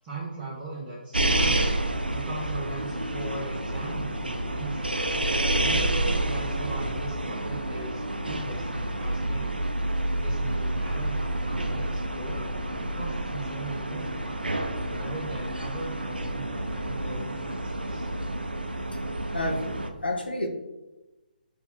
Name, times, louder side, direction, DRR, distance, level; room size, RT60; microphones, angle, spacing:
voice 1, 0.0-1.8 2.1-4.9 5.5-9.7 10.1-12.4 12.8-14.4 14.9-18.1, right 2 dB, 25° right, -10 dB, 1.2 m, -39 dB
sound 1, 1.1-19.9, right 1 dB, 85° right, 0.5 m, -29 dB
voice 2, 19.3-20.5, left 1 dB, 90° left, 2 dB, 0.9 m, -30 dB
4.3 x 2.9 x 3.6 m, 1.0 s
figure-of-eight pair, 140°, 5 cm